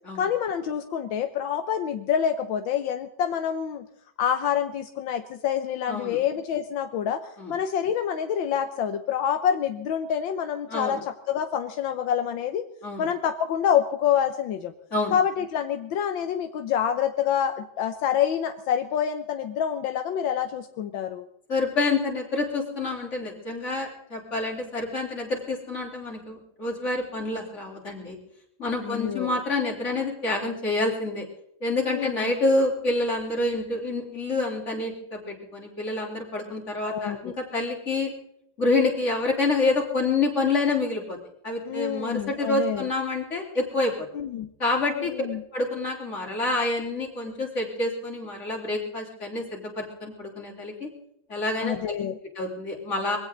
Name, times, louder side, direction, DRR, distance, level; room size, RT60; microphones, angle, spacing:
voice 1, 0.1-3.8 4.2-12.6 13.0-14.7 15.1-21.2 28.8-29.4 31.9-32.3 36.9-37.3 41.7-42.9 44.1-44.5 44.9-45.4 51.6-52.2, left 9 dB, 80° left, 8 dB, 1.6 m, -27 dB
voice 2, 10.7-11.0 12.8-13.1 14.9-15.1 21.5-28.2 28.6-31.3 31.6-38.1 38.6-41.2 41.4-44.1 44.6-45.3 45.5-50.9 51.3-51.9 52.4-53.2, left 2 dB, 35° left, -1 dB, 4.0 m, -27 dB
22.5 x 16.0 x 3.9 m, 0.74 s
omnidirectional pair, 2.1 m